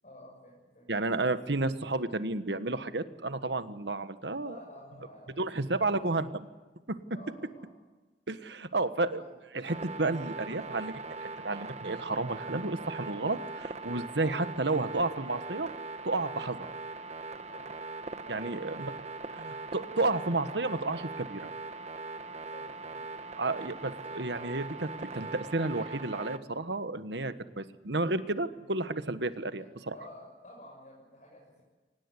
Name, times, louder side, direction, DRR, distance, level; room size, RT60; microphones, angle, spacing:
voice 1, 0.0-1.0 4.4-6.2 7.1-7.7 9.1-9.3 13.2-13.4 17.5-17.7 18.2-19.0 22.3-23.1 28.5-28.6 29.6-31.6, left 1 dB, 45° left, -3 dB, 6.7 m, -52 dB
voice 2, 0.9-4.6 5.4-6.3 6.9-7.0 8.3-9.2 9.5-11.0 11.4-15.7 16.0-16.7 18.3-18.9 19.4-21.5 23.4-29.9, right 2 dB, 70° right, 11 dB, 1.5 m, -31 dB
sound 1, 9.7-26.4, right 3 dB, 40° right, 1.2 m, -41 dB
24.5 x 19.0 x 9.9 m, 1.3 s
head